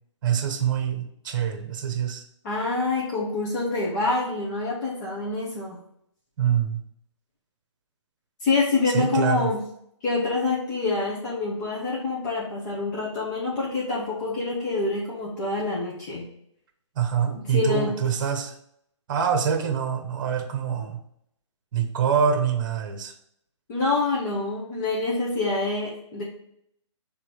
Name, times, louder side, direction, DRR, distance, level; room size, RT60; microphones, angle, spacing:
voice 1, 0.2-2.2 6.4-6.8 8.9-9.5 17.0-18.5 19.1-21.0 21.7-23.1, right 8 dB, 40° right, 7 dB, 1.0 m, -25 dB
voice 2, 2.4-5.8 8.4-9.6 10.0-16.3 17.3-17.9 23.7-26.2, left 3 dB, 35° left, -6 dB, 1.7 m, -26 dB
6.0 x 3.6 x 4.7 m, 0.72 s
figure-of-eight pair, 135°, 16 cm